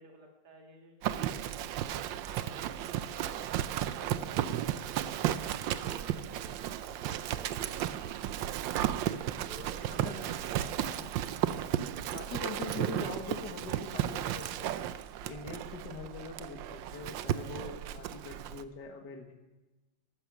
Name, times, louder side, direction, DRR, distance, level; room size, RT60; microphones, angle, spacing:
voice 1, 0.0-1.5 1.8-4.8 5.2-8.6 9.5-11.1, right 1 dB, 50° right, 1 dB, 2.7 m, -53 dB
Livestock farm animals working animals, 1.0-18.6, right 11 dB, 70° right, 1.2 m, -34 dB
voice 2, 9.9-10.3 10.9-11.3 12.1-14.7 15.3-19.4, left 4 dB, 55° left, 3 dB, 2.1 m, -43 dB
14.0 x 13.5 x 6.0 m, 1.1 s
omnidirectional pair, 2.3 m